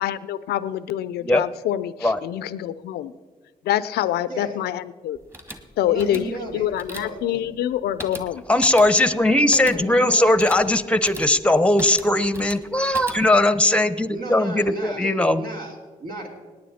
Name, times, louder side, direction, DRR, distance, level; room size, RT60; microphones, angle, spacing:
voice 1, 0.0-3.1 3.6-5.2 5.8-6.3 6.5-8.4, left 12 dB, 85° left, 16 dB, 0.5 m, -26 dB
voice 2, 4.3-4.6 5.8-7.4 9.5-10.3 14.1-16.3, right 1 dB, 65° right, 0 dB, 3.3 m, -35 dB
sound 1, 5.2-13.5, equal, 15° right, 1.9 m, -40 dB
voice 3, 8.5-15.4, left 1 dB, 5° left, 14 dB, 0.9 m, -19 dB
18.0 x 9.9 x 4.2 m, 1.4 s
supercardioid pair, 60°, 16 cm